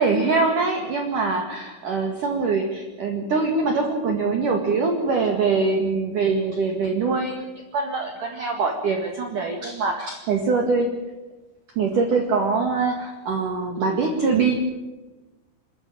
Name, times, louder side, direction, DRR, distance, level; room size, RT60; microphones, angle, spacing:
voice 1, 0.0-10.9 11.8-14.5, right 4 dB, 50° right, 3 dB, 2.9 m, -23 dB
28.0 x 14.0 x 8.8 m, 1.2 s
omnidirectional pair, 5.8 m